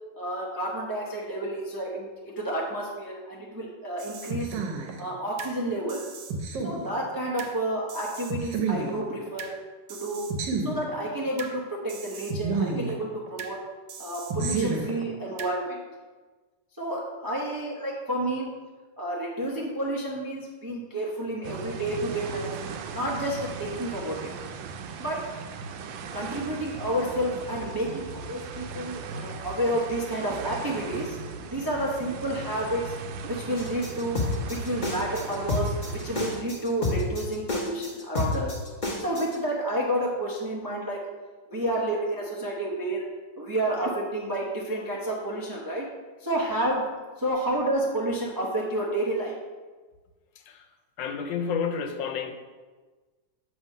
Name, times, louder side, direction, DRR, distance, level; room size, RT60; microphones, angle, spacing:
voice 1, 0.1-4.6 5.0-6.1 6.6-9.5 9.9-10.3 10.6-13.6 14.0-15.8 16.8-18.5 19.0-22.5 22.9-24.3 25.0-25.3 26.1-31.2 31.5-32.9 33.3-34.2 34.5-38.6 39.0-41.0 41.5-43.1 43.4-45.8 46.2-46.9 47.2-49.3, right 1 dB, 25° right, -3 dB, 0.4 m, -30 dB
sound 1, 4.0-5.5 5.9-7.5 7.9-9.5 9.9-11.5 11.9-13.5 13.9-15.5, right 4 dB, 75° right, 1.4 m, -32 dB
sound 2, 21.4-36.4, right 5 dB, 90° right, 1.3 m, -38 dB
sound 3, 33.6-39.3, left 2 dB, 30° left, 1.1 m, -29 dB
voice 2, 51.0-52.4, left 6 dB, 90° left, 6 dB, 1.4 m, -30 dB
7.5 x 3.4 x 5.3 m, 1.3 s
omnidirectional pair, 2.0 m